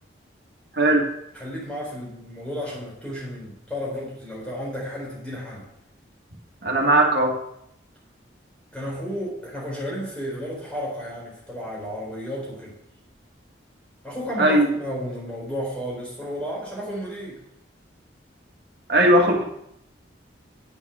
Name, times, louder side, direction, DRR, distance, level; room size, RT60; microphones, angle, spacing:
voice 1, 0.7-1.1 6.6-7.4 14.4-14.7 18.9-19.4, right 1 dB, 55° right, 0 dB, 2.0 m, -18 dB
voice 2, 1.3-5.7 8.7-12.8 14.0-17.4 19.1-19.4, equal, 5° left, -5 dB, 4.5 m, -33 dB
9.9 x 8.0 x 6.2 m, 0.78 s
head